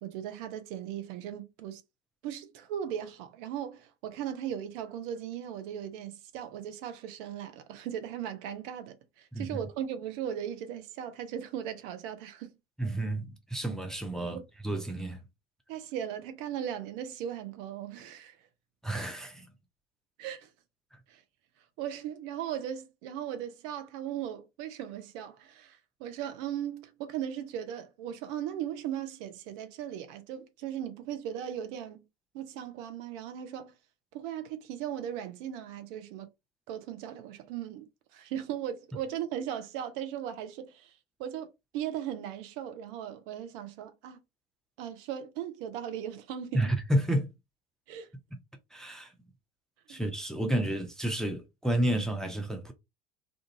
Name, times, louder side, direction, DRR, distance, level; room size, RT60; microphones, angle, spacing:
voice 1, 0.0-1.8 2.2-12.5 14.3-14.4 15.7-18.4 20.2-20.5 21.1-21.2 21.8-32.0 32.3-33.7 34.1-36.3 36.7-37.9 38.1-40.9 41.2-44.2 44.8-46.6 47.9-48.1 49.9-50.1, right 10 dB, 55° right, 0.7 m, -38 dB
voice 2, 12.8-15.2 18.8-19.5 46.5-47.3 48.3-48.4 48.7-49.1 49.9-52.7, right 1 dB, ahead, 0.5 m, -30 dB
2.5 x 2.4 x 2.7 m
figure-of-eight pair, 70°, 32 cm